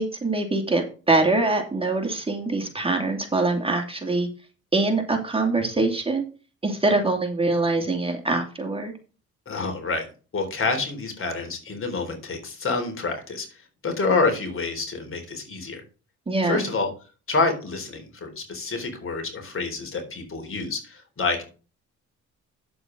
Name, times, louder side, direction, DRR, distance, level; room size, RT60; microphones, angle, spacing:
voice 1, 0.0-4.3 4.7-6.2 6.6-8.9 16.3-16.6, right 2 dB, 20° right, 3 dB, 2.6 m, -24 dB
voice 2, 9.5-10.1 10.3-13.6 13.8-15.8 16.4-16.9 17.3-21.4, left 3 dB, 45° left, 5 dB, 3.8 m, -27 dB
9.4 x 7.8 x 3.9 m, 0.34 s
cardioid pair, 90°, 30 cm